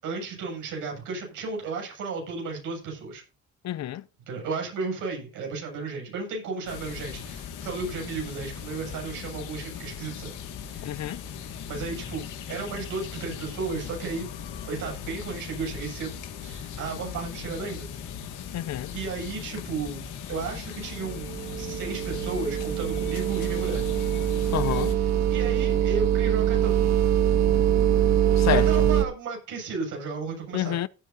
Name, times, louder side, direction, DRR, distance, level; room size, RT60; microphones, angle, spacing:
voice 1, 0.0-3.2 4.3-10.3 10.7-11.0 11.7-14.3 14.7-17.9 18.9-21.3 21.6-23.8 25.3-26.8 28.5-30.8, right 4 dB, 90° right, 7.2 m, -34 dB
voice 2, 3.6-4.0 10.8-11.2 18.5-18.9 24.5-24.9 28.4-28.9 30.5-30.9, left 12 dB, 65° left, 0.6 m, -28 dB
sound 1, 6.7-24.9, left 8 dB, 90° left, 2.1 m, -38 dB
sound 2, 20.9-29.1, right 10 dB, 60° right, 1.6 m, -23 dB
17.0 x 9.3 x 2.8 m
cardioid pair, 90°, 30 cm